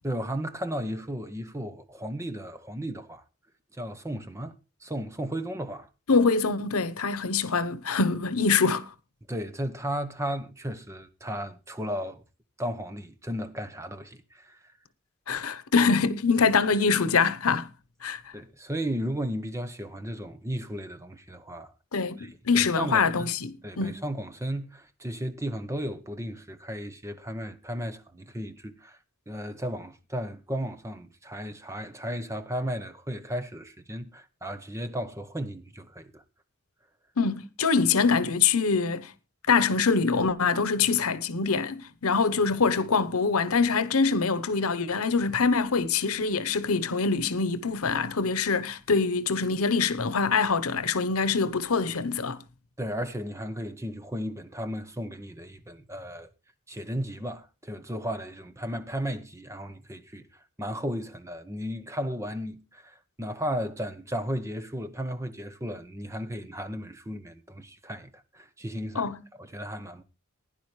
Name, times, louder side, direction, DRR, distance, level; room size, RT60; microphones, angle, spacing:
voice 1, 0.0-3.2 3.7-4.5 4.8-5.9 9.3-12.2 12.6-14.7 18.3-21.7 22.2-23.3 23.6-29.0 29.3-36.2 52.8-56.3 56.7-70.0, equal, 15° right, 0.9 m, -35 dB
voice 2, 6.1-8.8 15.3-17.7 18.0-18.2 21.9-24.0 37.2-39.1 39.5-52.4 68.9-69.2, left 5 dB, 85° left, 1.0 m, -24 dB
16.5 x 10.5 x 3.2 m
head